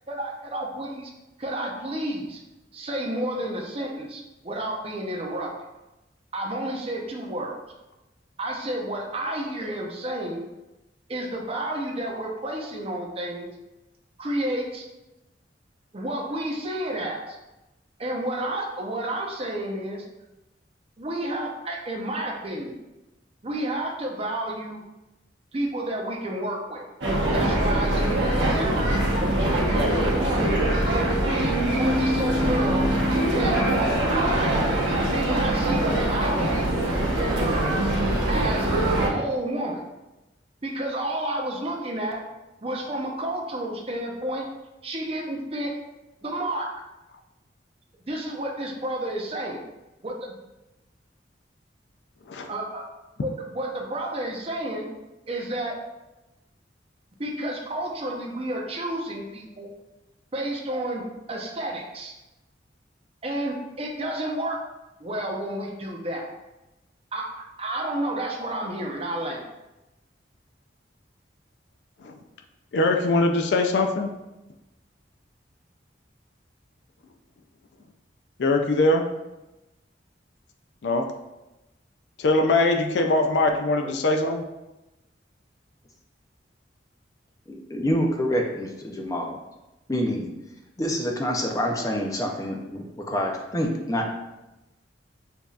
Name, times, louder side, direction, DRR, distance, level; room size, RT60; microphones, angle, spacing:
voice 1, 0.1-1.1 1.4-2.4 2.7-5.5 6.3-7.6 8.4-10.4 11.1-13.5 14.2-14.8 15.9-17.4 18.0-20.0 21.0-22.8 23.4-24.8 25.5-26.8 27.3-28.9 29.2-30.5 30.8-31.4 31.8-32.9 33.3-33.6 34.1-34.6 35.1-36.7 37.2-37.7 38.3-38.7 39.0-39.8 40.6-42.2 42.6-44.5 44.8-45.7 46.2-46.7 48.1-49.6 50.0-50.1 52.5-52.9 53.2-54.9 55.3-55.7 57.2-59.7 60.3-61.0 61.3-62.1 63.2-64.6 65.0-66.2 67.1-69.4, right 1 dB, 30° right, 0 dB, 0.6 m, -30 dB
sound 1, 27.0-39.1, right 1 dB, 70° right, 1.0 m, -23 dB
voice 2, 72.7-74.1 78.4-79.0 80.8-81.1 82.2-84.4, left 2 dB, 65° left, 4 dB, 0.4 m, -22 dB
voice 3, 87.5-89.4 89.9-90.3 90.8-94.1, equal, 20° left, 1 dB, 0.5 m, -27 dB
6.7 x 2.7 x 2.4 m, 1.0 s
head